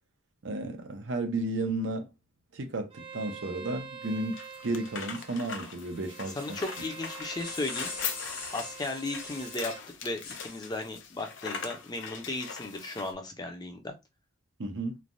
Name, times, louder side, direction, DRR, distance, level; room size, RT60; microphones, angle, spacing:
voice 1, 0.4-2.1 2.5-4.4 4.6-6.4 14.6-15.0, right 2 dB, 80° right, 0.6 m, -33 dB
Bowed string instrument, 2.9-9.8, right 6 dB, 30° right, 0.4 m, -46 dB
sound 1, 4.0-13.1, left 6 dB, 80° left, 0.5 m, -41 dB
voice 2, 6.4-7.9 8.5-9.7 10.0-13.9, left 2 dB, 20° left, 0.5 m, -35 dB
sound 2, 7.4-9.7 10.2-10.9, left 4 dB, 45° left, 0.9 m, -42 dB
3.2 x 2.2 x 2.6 m
head